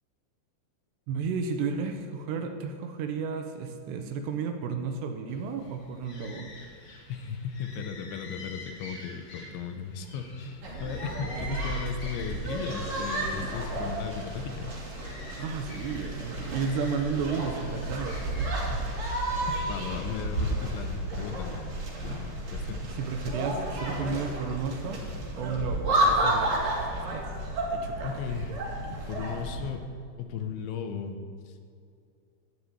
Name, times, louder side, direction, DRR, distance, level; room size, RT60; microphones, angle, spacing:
voice 1, 1.1-6.5 15.4-18.5 22.9-25.0 25.3-26.6 26.9-27.3 27.7-28.2, right 5 dB, 75° right, 5 dB, 2.8 m, -33 dB
sound 1, 5.3-19.6, left 2 dB, 55° left, 1.4 m, -47 dB
voice 2, 7.1-14.8 18.7-19.2 19.5-21.7 22.0-22.8 28.0-28.5 28.9-29.9 30.2-31.2, left 6 dB, 85° left, 7 dB, 3.3 m, -36 dB
sound 2, 10.6-29.7, right 1 dB, 40° right, 3.0 m, -32 dB
13.0 x 7.8 x 8.6 m, 2.4 s
omnidirectional pair, 5.3 m